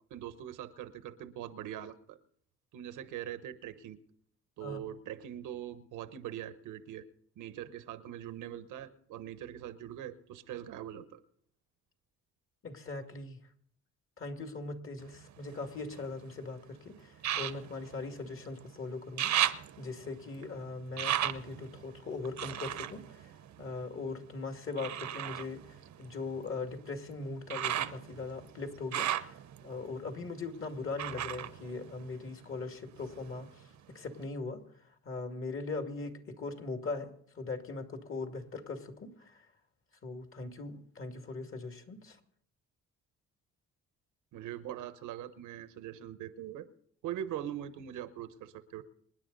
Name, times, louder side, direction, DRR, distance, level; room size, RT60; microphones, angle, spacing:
voice 1, 0.1-2.2 2.7-4.0 4.6-7.1 7.4-11.2 44.3-46.7 47.0-48.8, right 11 dB, 90° right, 12 dB, 1.1 m, -42 dB
voice 2, 12.6-13.4 14.2-19.3 19.8-23.3 23.6-29.4 29.6-34.6 35.0-39.5 40.0-42.2, left 3 dB, 45° left, 5 dB, 2.5 m, -40 dB
sound 1, 15.0-16.4 17.2-18.7 19.0-24.1 24.8-32.6 32.9-33.8 34.2-34.3, right 11 dB, 65° right, 0.9 m, -36 dB
26.5 x 10.5 x 4.1 m, 0.64 s
cardioid pair, 90°, 30 cm